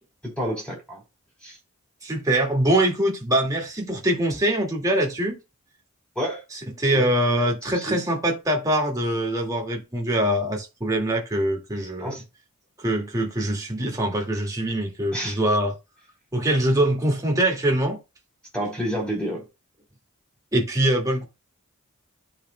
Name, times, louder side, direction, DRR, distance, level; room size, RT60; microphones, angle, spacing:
voice 1, 0.2-1.0 1.4-1.6 6.2-6.4 6.9-7.1 7.7-8.0 12.0-12.2 15.1-15.4 18.5-19.5, equal, 5° left, 3.6 m, -29 dB
voice 2, 2.0-5.4 6.8-12.2 12.8-15.8 16.3-18.0 20.5-21.2, right 1 dB, 15° right, 2.0 m, -23 dB
12.0 x 5.2 x 2.2 m
head